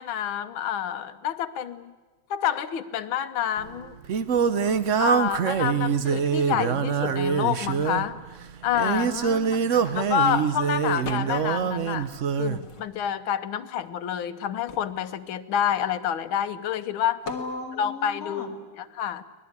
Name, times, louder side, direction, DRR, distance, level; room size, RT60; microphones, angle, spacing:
voice 1, 0.0-1.9 2.3-4.0 5.0-8.2 8.6-9.1 9.9-12.1 12.4-17.2 17.8-19.2, left 9 dB, 90° left, 12 dB, 1.8 m, -28 dB
Singing, 3.6-12.6, right 6 dB, 50° right, 0.9 m, -25 dB
voice 2, 9.0-10.0 17.3-18.6, left 4 dB, 45° left, 1 dB, 2.8 m, -36 dB
sound 1, 11.0-11.6 12.0-13.2 13.8-13.9 14.2-16.4 17.2-17.5, left 5 dB, 65° left, 2.5 m, -42 dB
24.0 x 19.0 x 9.6 m, 1.3 s
omnidirectional pair, 2.2 m